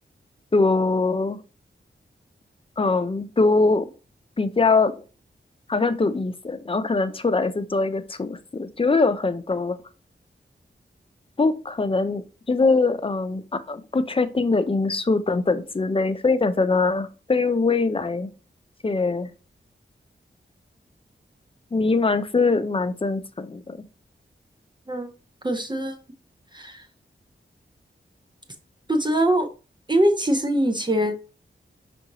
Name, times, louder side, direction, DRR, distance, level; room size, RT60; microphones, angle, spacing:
voice 1, 0.5-1.4 2.8-3.9 4.4-4.9 5.7-9.8 11.4-18.3 18.8-19.3 21.7-23.8, left 3 dB, 25° left, 11 dB, 0.5 m, -22 dB
voice 2, 25.4-26.0 26.5-26.8 28.9-29.5 29.9-31.2, right 1 dB, 25° right, 5 dB, 0.6 m, -22 dB
5.5 x 2.6 x 2.9 m, 0.34 s
cardioid pair, 50°, 20 cm